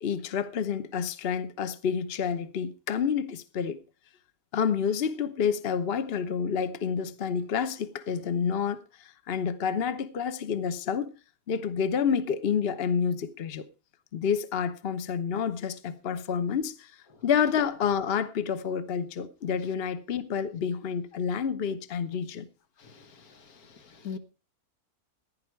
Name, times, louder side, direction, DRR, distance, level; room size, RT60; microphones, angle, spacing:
voice 1, 0.0-3.8 4.5-11.1 11.5-13.7 14.1-16.9 17.2-22.5, left 7 dB, 45° left, 1.1 m, -29 dB
voice 2, 22.8-24.2, left 7 dB, 80° left, 1.9 m, -43 dB
16.0 x 10.5 x 4.6 m
omnidirectional pair, 1.5 m